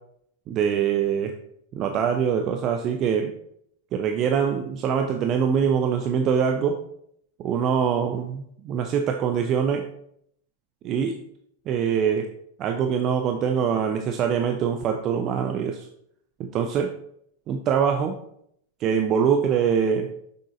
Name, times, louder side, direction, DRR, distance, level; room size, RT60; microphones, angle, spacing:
voice 1, 0.5-1.3 1.7-3.3 3.9-6.8 7.4-9.9 10.8-11.1 11.7-12.3 12.6-15.9 16.4-16.9 17.5-18.2 18.8-20.1, right 7 dB, 35° right, 4 dB, 0.5 m, -23 dB
6.6 x 6.1 x 2.5 m, 0.71 s
figure-of-eight pair, 90°, 0 cm